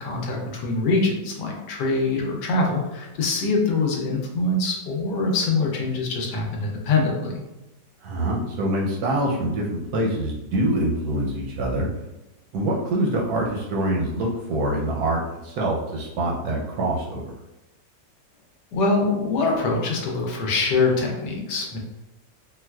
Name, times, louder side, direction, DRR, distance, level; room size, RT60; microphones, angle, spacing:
voice 1, 0.0-7.4 18.7-21.8, left 3 dB, 75° left, 0 dB, 1.2 m, -24 dB
voice 2, 8.0-11.9 12.5-17.3, right 1 dB, 70° right, -2 dB, 0.9 m, -25 dB
3.9 x 2.3 x 2.2 m, 0.96 s
omnidirectional pair, 1.9 m